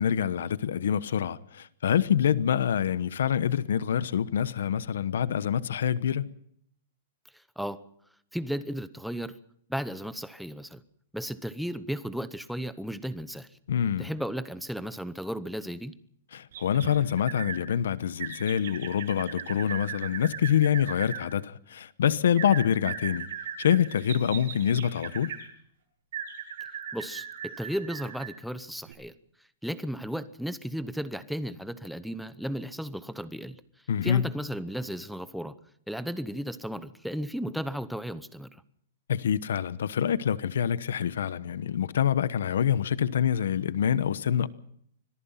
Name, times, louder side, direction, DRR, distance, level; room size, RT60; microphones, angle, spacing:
voice 1, 0.0-6.3 13.7-14.1 16.3-23.3 23.6-25.3 33.9-34.3 39.1-44.5, left 9 dB, 85° left, 1.0 m, -26 dB
voice 2, 8.3-9.4 9.7-10.8 11.1-13.5 14.0-15.9 26.9-29.1 29.6-33.6 34.0-35.5 35.9-38.5, equal, ahead, 0.8 m, -34 dB
sound 1, 16.5-17.6 18.2-21.2 22.4-25.5 26.1-28.4 28.9-29.0, right 8 dB, 65° right, 8.0 m, -38 dB
25.5 x 18.0 x 5.7 m
supercardioid pair, 165°, 0 cm